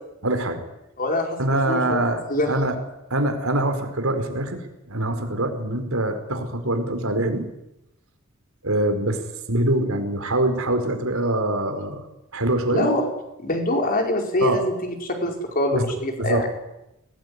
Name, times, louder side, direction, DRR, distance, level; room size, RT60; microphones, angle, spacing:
voice 1, 0.2-0.6 1.4-2.7 3.1-7.4 8.6-9.2 9.5-12.0 12.3-12.9 14.4-14.6 15.7-15.9 16.2-16.4, right 1 dB, 90° right, 6 dB, 4.6 m, -24 dB
voice 2, 1.0-2.0 2.3-2.5 12.7-13.1 13.4-16.5, left 1 dB, 45° left, 3 dB, 4.9 m, -24 dB
22.0 x 19.0 x 9.8 m, 0.89 s
head